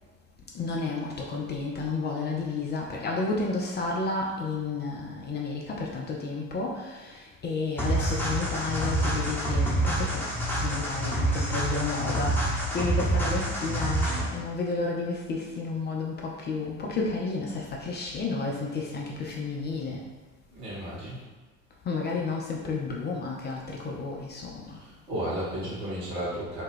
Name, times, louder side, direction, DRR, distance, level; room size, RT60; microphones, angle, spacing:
voice 1, 0.5-7.1 7.4-10.2 10.6-20.0 21.9-24.8, left 3 dB, 25° left, -2 dB, 0.4 m, -31 dB
sound 1, 7.8-14.4, right 1 dB, 5° left, 0.9 m, -27 dB
voice 2, 20.5-21.2 24.8-26.6, right 1 dB, 65° right, -8 dB, 1.4 m, -33 dB
2.8 x 2.2 x 3.4 m, 1.3 s
figure-of-eight pair, 60°, 40 cm